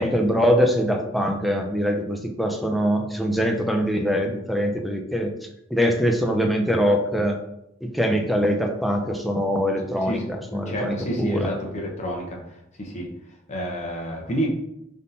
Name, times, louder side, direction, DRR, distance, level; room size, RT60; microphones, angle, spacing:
voice 1, 0.0-5.3 5.7-7.4 7.8-11.5, equal, ahead, 3 dB, 0.4 m, -23 dB
voice 2, 9.8-10.2 10.5-12.4 12.8-13.1 13.5-14.5, equal, 35° left, 0 dB, 0.8 m, -29 dB
3.9 x 3.5 x 2.7 m, 0.82 s
head